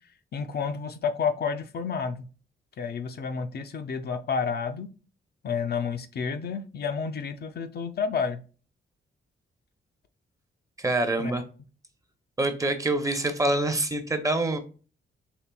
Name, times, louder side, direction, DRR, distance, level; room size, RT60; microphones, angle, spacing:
voice 1, 0.3-2.3 2.8-4.9 5.4-8.4 11.2-11.4, left 6 dB, 55° left, 8 dB, 0.4 m, -30 dB
voice 2, 10.8-11.4 12.4-14.6, right 2 dB, 15° right, 6 dB, 0.6 m, -25 dB
4.4 x 3.2 x 2.2 m, 0.36 s
wide cardioid pair, 120°, 20 cm